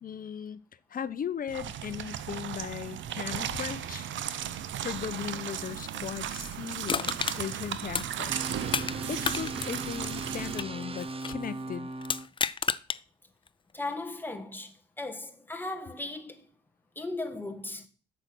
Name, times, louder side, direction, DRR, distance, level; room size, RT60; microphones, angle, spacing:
voice 1, 0.0-4.1 4.8-8.3 9.1-11.9, left 8 dB, 45° left, 0.8 m, -37 dB
sound 1, 1.5-10.6, right 10 dB, 70° right, 0.8 m, -36 dB
Crushing, 6.9-9.0 9.2-11.4 12.0-13.0 13.5-13.6, left 6 dB, 25° left, 0.4 m, -31 dB
sound 2, 8.3-12.3, right 2 dB, 30° right, 0.9 m, -38 dB
voice 2, 13.7-16.4 16.9-17.9, left 2 dB, 10° left, 1.6 m, -37 dB
8.1 x 6.9 x 6.1 m
cardioid pair, 90°, 20 cm